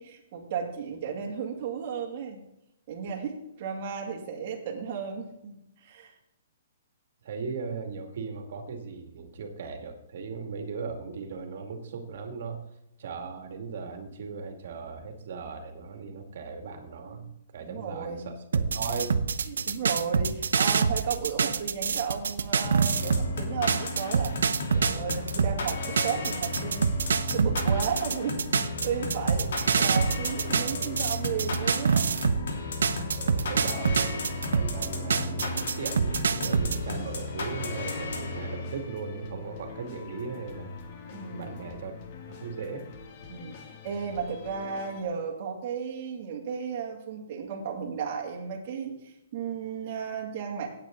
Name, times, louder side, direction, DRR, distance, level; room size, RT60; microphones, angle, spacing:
voice 1, 0.0-2.4 2.9-6.1 17.6-18.3 19.5-24.3 24.7-29.5 29.8-32.1 33.4-33.6 41.1-41.5 43.3-50.7, right 6 dB, 35° right, -2 dB, 2.5 m, -34 dB
voice 2, 7.2-12.6 13.0-19.2 29.5-29.6 33.1-34.2 34.5-40.7 41.3-41.9 42.3-42.9, right 4 dB, 55° right, 5 dB, 2.3 m, -38 dB
sound 1, 18.5-23.3 23.7-32.5 32.8-36.8, right 5 dB, 90° right, 0.9 m, -26 dB
sound 2, 22.6-38.9, left 2 dB, 70° left, 3.2 m, -34 dB
sound 3, 27.0-45.0, left 5 dB, 35° left, 1.9 m, -47 dB
16.5 x 8.8 x 3.9 m, 0.85 s
hypercardioid pair, 160°, 0 cm